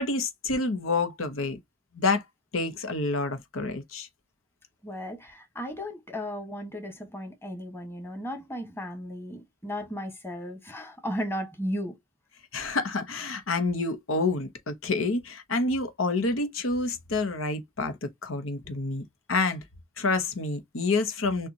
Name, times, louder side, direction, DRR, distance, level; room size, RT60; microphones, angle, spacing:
voice 1, 0.0-1.6 1.9-2.2 2.5-4.1 12.5-19.6 20.0-21.5, left 3 dB, 85° left, 1.0 m, -28 dB
voice 2, 4.8-12.0, equal, 10° left, 1.4 m, -35 dB
6.5 x 2.5 x 2.8 m
head